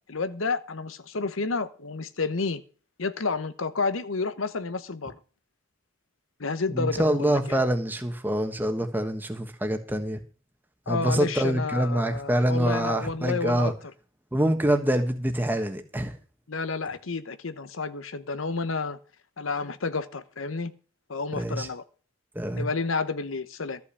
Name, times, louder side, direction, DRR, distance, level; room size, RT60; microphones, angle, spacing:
voice 1, 0.1-2.6 3.0-5.1 6.4-7.6 10.9-13.7 16.5-19.0 19.4-20.7 21.1-21.8 22.5-23.8, left 4 dB, 85° left, 1.0 m, -30 dB
voice 2, 6.7-10.2 10.9-13.7 14.3-16.1 21.3-21.7 22.3-22.6, right 1 dB, 10° right, 1.4 m, -25 dB
13.5 x 5.7 x 8.3 m
head